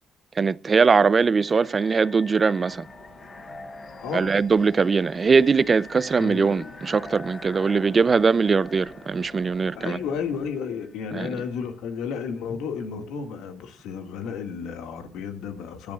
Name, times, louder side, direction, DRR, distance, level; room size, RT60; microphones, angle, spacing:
voice 1, 0.4-2.9 4.1-10.0 11.1-11.3, right 5 dB, 35° right, 0.5 m, -21 dB
sound 1, 0.9-11.7, left 2 dB, 35° left, 1.3 m, -45 dB
sound 2, 2.6-10.5, left 2 dB, 70° left, 6.3 m, -49 dB
voice 2, 6.2-6.7 9.8-15.9, left 6 dB, 90° left, 2.0 m, -32 dB
21.5 x 12.0 x 2.4 m
cardioid pair, 90°, 0 cm